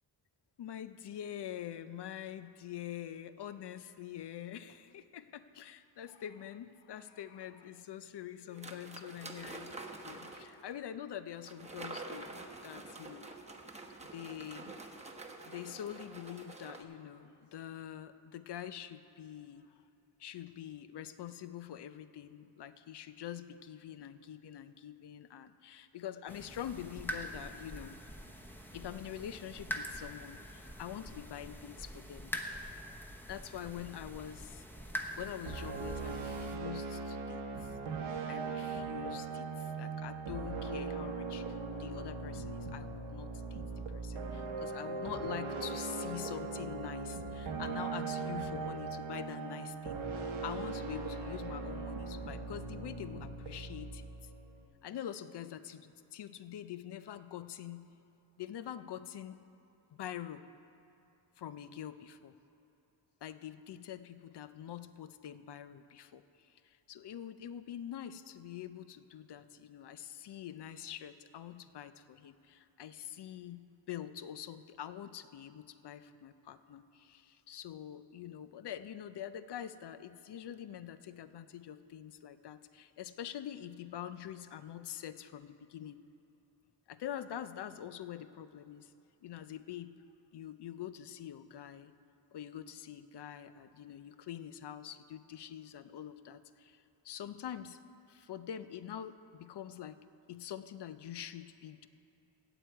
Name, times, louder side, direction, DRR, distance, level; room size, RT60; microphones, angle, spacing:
voice 1, 0.6-9.8 10.0-13.3 14.1-14.7 15.4-19.8 20.2-27.9 28.7-32.3 33.2-34.6 35.2-37.7 38.3-50.0 50.4-54.3 54.8-57.9 58.4-59.4 59.9-60.4 61.4-62.3 63.2-86.0 86.9-88.9 89.2-89.9 90.3-91.9 92.3-97.8 98.1-100.0 100.3-101.9, left 10 dB, 60° left, 12 dB, 0.6 m, -45 dB
sound 1, 8.5-10.6 11.4-16.8, right 2 dB, 15° right, 0.9 m, -47 dB
sound 2, 26.3-36.6, equal, 5° left, 0.9 m, -44 dB
sound 3, 35.5-54.6, right 4 dB, 85° right, 1.2 m, -39 dB
16.0 x 8.1 x 4.6 m, 2.8 s
cardioid pair, 90°, 47 cm